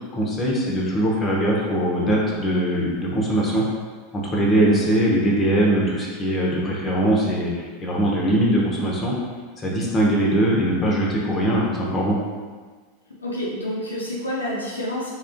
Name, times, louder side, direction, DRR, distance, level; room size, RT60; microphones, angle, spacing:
voice 1, 0.1-3.6 4.1-9.1 9.6-12.2, right 1 dB, 25° left, -3 dB, 0.7 m, -21 dB
voice 2, 13.2-15.1, left 1 dB, 80° left, -3 dB, 0.4 m, -28 dB
2.8 x 2.4 x 2.5 m, 1.5 s
figure-of-eight pair, 85°, 0 cm